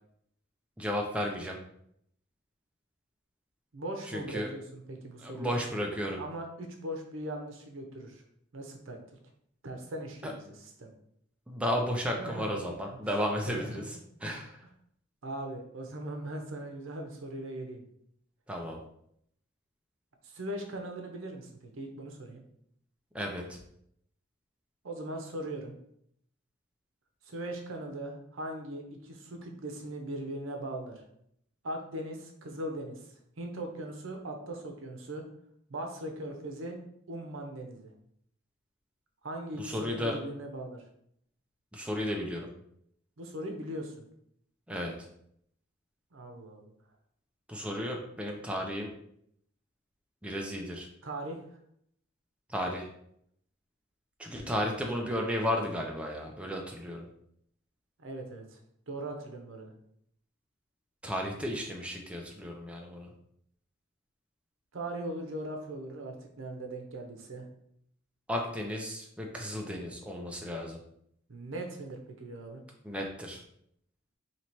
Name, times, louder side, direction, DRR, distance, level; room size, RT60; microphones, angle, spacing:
voice 1, 0.8-1.6 4.1-4.5 5.2-6.2 10.2-10.3 11.5-13.8 14.2-14.5 18.5-18.8 23.1-23.6 39.6-40.2 41.7-42.5 44.7-44.9 47.5-48.9 50.2-50.9 52.5-52.9 54.2-57.0 61.0-63.1 68.3-70.8 72.8-73.4, equal, 5° right, 0 dB, 0.4 m, -33 dB
voice 2, 3.7-5.6 6.2-8.2 8.5-9.0 9.6-10.9 12.2-12.6 13.1-13.7 15.2-17.8 20.2-22.4 24.8-25.7 27.3-31.0 31.6-33.1 33.4-35.2 35.7-36.8 37.1-37.9 39.2-40.8 43.2-44.0 46.1-46.7 51.0-51.4 58.0-58.6 58.9-59.7 64.7-67.5 71.3-72.6, right 1 dB, 70° right, 3 dB, 0.7 m, -39 dB
2.9 x 2.8 x 4.5 m, 0.71 s
head